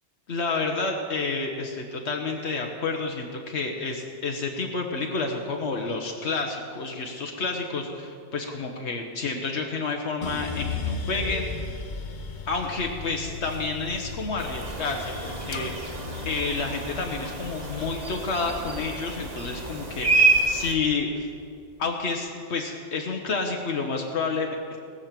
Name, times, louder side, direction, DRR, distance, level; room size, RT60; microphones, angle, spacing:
voice 1, 0.3-11.7 12.5-15.7 16.2-21.3 21.8-24.6, left 4 dB, 80° left, 2 dB, 1.3 m, -29 dB
sound 1, 10.2-20.4 20.9-21.6, left 4 dB, 45° left, 0.9 m, -36 dB
sound 2, 14.4-20.7, right 3 dB, 40° right, 1.3 m, -28 dB
18.5 x 6.6 x 7.4 m, 2.4 s
omnidirectional pair, 1.1 m